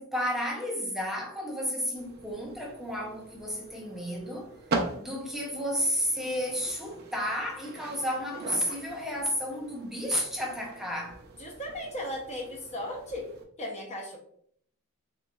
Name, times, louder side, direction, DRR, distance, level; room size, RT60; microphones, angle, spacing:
voice 1, 0.0-4.5 5.0-11.2, equal, ahead, 0.5 m, -32 dB
sound 1, 2.0-13.4, right 3 dB, 45° right, 0.6 m, -41 dB
voice 2, 11.4-13.3 13.6-14.2, left 1 dB, 30° left, 0.7 m, -36 dB
4.0 x 3.1 x 2.3 m
head